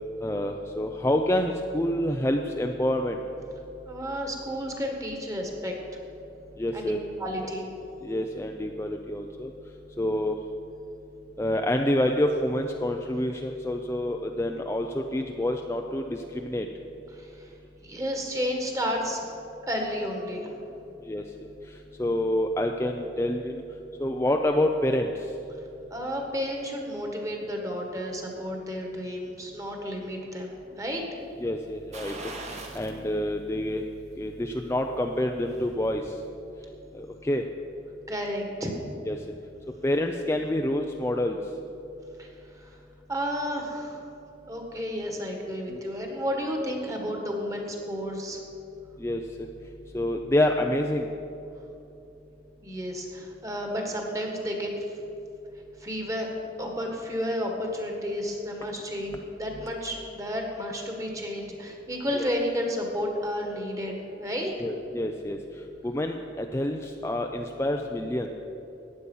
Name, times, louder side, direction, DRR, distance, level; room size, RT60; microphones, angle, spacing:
voice 1, 0.2-3.2 6.6-7.0 8.0-9.5 10.0-10.4 11.4-16.7 21.0-21.2 21.6-23.6 24.0-25.3 31.4-33.8 34.2-36.2 36.9-37.4 39.1-39.2 39.8-41.4 45.7-45.8 49.0-49.2 49.9-51.1 64.6-68.3, left 1 dB, 15° left, 3 dB, 0.5 m, -27 dB
voice 2, 3.9-5.7 6.7-7.7 17.1-17.5 17.8-19.2 19.6-20.5 25.9-31.0 38.1-38.7 42.2-42.3 42.6-42.7 43.1-44.0 44.5-48.4 52.6-54.8 55.8-56.3 56.6-64.5, equal, 20° right, 2 dB, 1.7 m, -32 dB
sound 1, 31.9-33.0 33.4-33.5 35.0-35.8 36.1-36.2, right 2 dB, 40° right, 1.4 m, -41 dB
15.0 x 9.6 x 5.5 m, 2.9 s
head